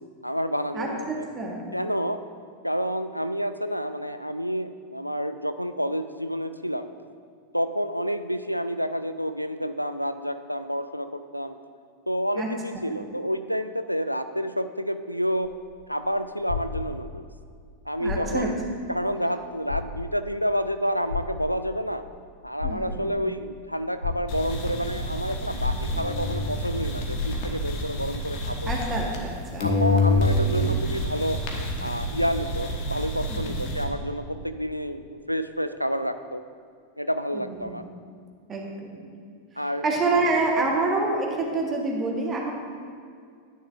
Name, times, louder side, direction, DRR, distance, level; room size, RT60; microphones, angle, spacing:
voice 1, 0.2-1.3 1.7-2.2 2.6-6.9 7.5-11.5 12.1-15.5 15.9-17.2 17.9-18.5 18.9-22.0 22.4-28.7 29.6-31.4 31.8-36.4 37.0-37.9 39.6-39.8 40.6-40.7, equal, 90° left, 10 dB, 0.3 m, -29 dB
voice 2, 0.7-1.6 12.4-12.5 12.9-13.0 18.0-18.8 22.6-23.2 28.7-29.6 33.3-33.8 37.3-37.8 38.5-39.2 39.8-42.5, right 3 dB, 20° right, 0 dB, 1.3 m, -27 dB
sound 1, 15.3-17.3 17.9-18.6 19.0-19.1 19.6-20.3 21.1-21.9 22.4-23.3 24.0-24.8 25.6-26.3 26.8-26.9 27.2-27.9 28.6-29.4 29.7-29.8 30.1-30.7 31.5-31.6, left 4 dB, 80° right, 1.9 m, -33 dB
sound 2, 24.3-29.3 29.6-33.8, left 1 dB, 45° left, 1.3 m, -28 dB
10.0 x 9.2 x 2.6 m, 2.2 s
figure-of-eight pair, 90°, 0 cm